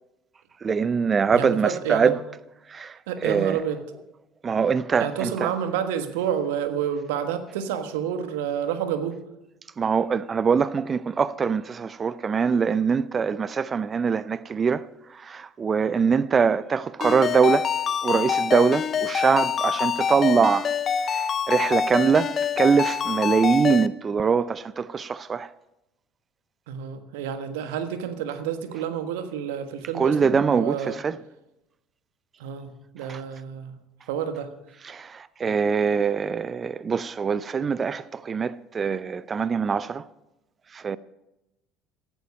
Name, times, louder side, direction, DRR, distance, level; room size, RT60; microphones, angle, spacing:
voice 1, 0.6-2.2 2.7-3.6 4.4-5.5 9.8-17.7 18.0-20.7 21.0-25.5 29.9-31.2 33.0-33.2 34.8-40.0 40.7-41.0, right 6 dB, 30° right, 0.5 m, -23 dB
voice 2, 1.3-2.1 3.1-3.8 5.0-9.2 26.7-31.0 32.4-33.7 34.1-34.5, right 8 dB, 70° right, 1.4 m, -29 dB
Ringtone, 17.0-23.9, left 7 dB, 40° left, 0.6 m, -26 dB
16.5 x 11.5 x 5.3 m
figure-of-eight pair, 65°, 0 cm